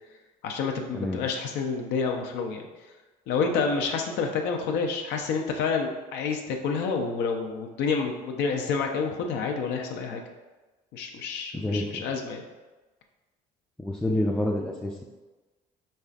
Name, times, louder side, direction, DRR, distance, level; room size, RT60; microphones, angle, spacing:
voice 1, 0.4-2.7 3.3-10.2 10.9-12.4, left 5 dB, 85° left, 3 dB, 0.5 m, -28 dB
voice 2, 11.5-12.0 13.8-15.0, left 1 dB, 5° left, -1 dB, 0.3 m, -28 dB
5.4 x 3.2 x 2.4 m, 1.2 s
cardioid pair, 110°, 17 cm